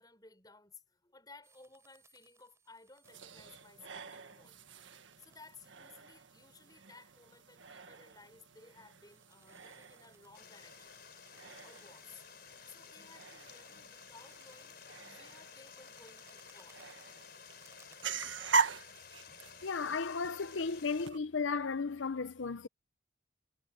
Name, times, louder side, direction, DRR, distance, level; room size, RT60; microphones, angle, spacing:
voice 1, 0.0-4.6 5.2-11.0 11.6-12.2 12.7-16.8, left 3 dB, 20° left, 7.0 m, -58 dB
sound 1, 1.4-5.8 6.4-6.6 6.9-8.2 8.6-18.0, right 4 dB, 15° right, 5.5 m, -69 dB
sound 2, 3.0-21.2, right 4 dB, 75° right, 1.6 m, -42 dB
Stream, 10.3-21.1, left 7 dB, 50° left, 4.8 m, -54 dB
voice 2, 19.6-22.7, left 4 dB, 80° left, 0.7 m, -35 dB
head